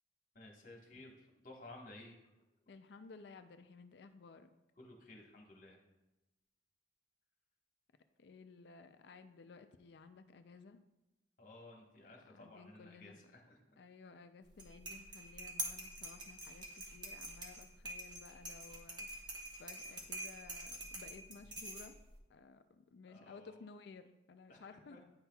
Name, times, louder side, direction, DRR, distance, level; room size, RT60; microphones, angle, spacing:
voice 1, 0.3-1.1 1.4-2.1 4.8-5.8 11.4-13.6 23.1-23.5 24.5-24.6 24.9-25.0, left 2 dB, 45° left, 0 dB, 1.3 m, -55 dB
voice 2, 2.7-4.5 8.2-10.8 12.0-13.2 13.8-16.7 16.9-22.0 22.3-25.0, left 4 dB, 65° left, 9 dB, 0.4 m, -56 dB
sound 1, 14.5-22.2, right 1 dB, 25° right, 1.0 m, -46 dB
9.5 x 5.8 x 2.3 m, 0.96 s
head